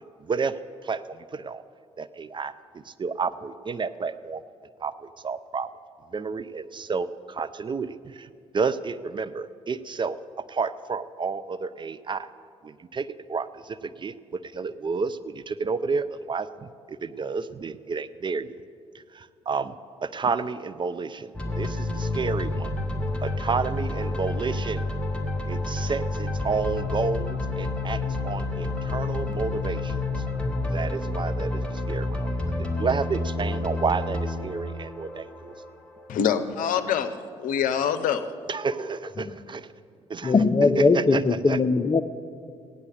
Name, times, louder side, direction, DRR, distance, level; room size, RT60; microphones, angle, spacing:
voice 1, 0.2-1.6 2.0-4.4 4.8-5.7 6.1-8.3 8.5-12.3 12.6-18.5 18.9-19.7 20.0-22.7 23.2-24.9 25.5-30.2 30.7-35.5 38.5-39.7 40.8-41.6, right 5 dB, 30° right, 14 dB, 0.5 m, -31 dB
sound 1, 21.3-36.1, left 2 dB, 5° left, 2.0 m, -29 dB
voice 2, 36.1-38.3, left 8 dB, 60° left, 10 dB, 0.8 m, -25 dB
voice 3, 40.3-42.0, left 4 dB, 25° left, 10 dB, 0.7 m, -20 dB
16.0 x 9.8 x 6.6 m, 2.4 s
figure-of-eight pair, 45°, 16 cm